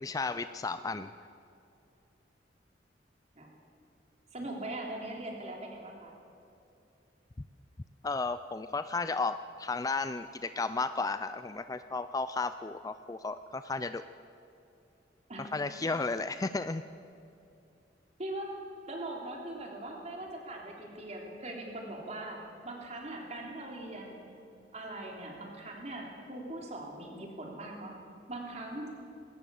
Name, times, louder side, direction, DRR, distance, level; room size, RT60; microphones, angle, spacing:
voice 1, 0.0-1.1 8.0-14.0 15.4-16.8, left 3 dB, 20° left, 12 dB, 0.4 m, -33 dB
voice 2, 4.3-6.2 15.3-15.5 18.2-18.5 18.9-24.3 24.7-28.0 28.3-28.9, right 1 dB, 40° right, 0 dB, 3.5 m, -41 dB
20.5 x 18.0 x 7.1 m, 2.7 s
head